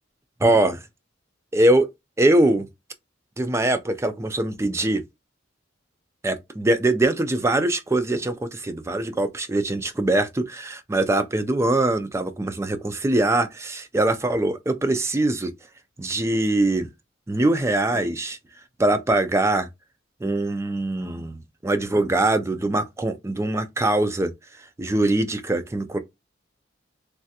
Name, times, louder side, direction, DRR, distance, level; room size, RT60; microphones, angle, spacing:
voice 1, 0.4-0.8 1.5-1.9 2.2-2.7 3.4-5.0 6.2-15.5 16.0-16.9 17.3-18.4 18.8-19.7 20.2-24.3 24.8-26.0, right 2 dB, 15° right, 0.3 m, -22 dB
3.2 x 2.4 x 2.7 m
head